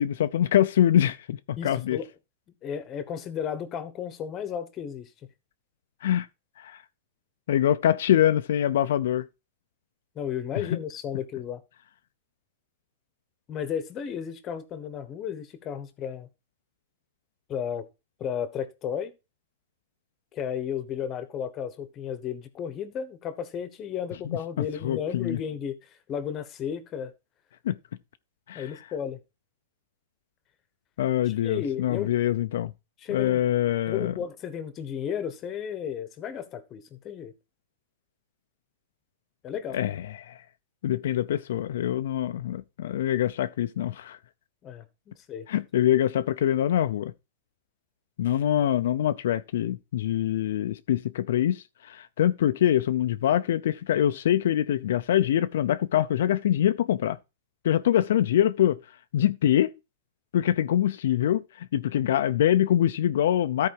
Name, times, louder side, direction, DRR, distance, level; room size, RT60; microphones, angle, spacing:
voice 1, 0.0-2.0 6.0-6.3 6.6-6.8 7.5-9.2 10.6-10.7 24.3-25.4 27.6-27.8 28.5-28.7 31.0-32.7 33.1-34.1 39.7-40.4 40.8-44.2 45.5-47.1 48.2-57.2 57.6-58.8 59.1-59.7 60.3-63.7, left 11 dB, 70° left, 0.6 m, -24 dB
voice 2, 1.6-2.1 2.6-5.1 10.1-11.6 13.5-16.3 17.5-17.9 18.2-19.1 20.3-25.8 26.1-27.1 28.5-29.2 31.3-32.1 33.0-33.4 33.9-37.3 39.4-39.8 44.6-45.5, left 8 dB, 25° left, 1.1 m, -33 dB
13.5 x 4.7 x 4.7 m
supercardioid pair, 160°, 0 cm